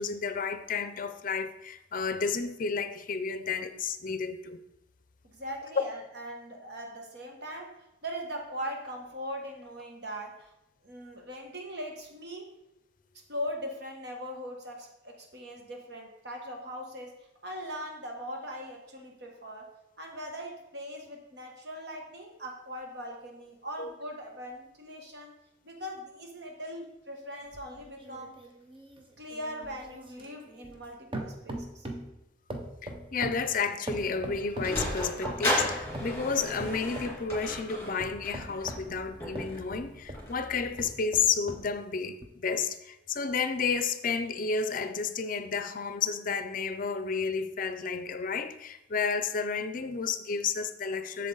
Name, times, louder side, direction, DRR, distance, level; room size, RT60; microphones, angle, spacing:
voice 1, 0.0-4.6 23.8-23.9 32.8-51.3, left 5 dB, 45° left, 0.5 m, -31 dB
voice 2, 5.2-10.5 10.8-12.5 13.3-19.7 20.0-25.3 25.6-28.4 29.2-31.9, equal, 55° right, 1.5 m, -40 dB
sound 1, 27.5-30.9 31.1-32.1 32.5-34.8 35.2-36.2 36.6-37.5 38.0-40.3 40.7-41.7 42.2-42.3, right 1 dB, 25° right, 0.8 m, -40 dB
Sliding door, 34.1-40.7, left 1 dB, 15° left, 2.6 m, -35 dB
7.6 x 6.9 x 3.9 m
head